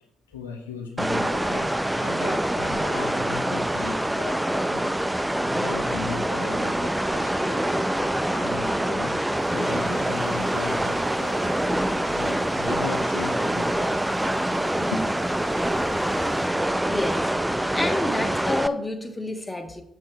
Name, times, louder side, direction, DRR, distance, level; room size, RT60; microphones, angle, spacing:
voice 1, 0.3-4.9 5.4-11.5 12.1-14.1 14.9-15.0, left 4 dB, 85° left, 1.0 m, -36 dB
sound 1, 1.0-18.7, right 1 dB, 10° right, 0.6 m, -25 dB
sound 2, 9.3-16.5, right 1 dB, 80° right, 2.4 m, -43 dB
voice 2, 16.8-17.3 17.7-19.8, left 2 dB, 20° left, 1.5 m, -29 dB
7.8 x 7.5 x 4.6 m
figure-of-eight pair, 40°, 0 cm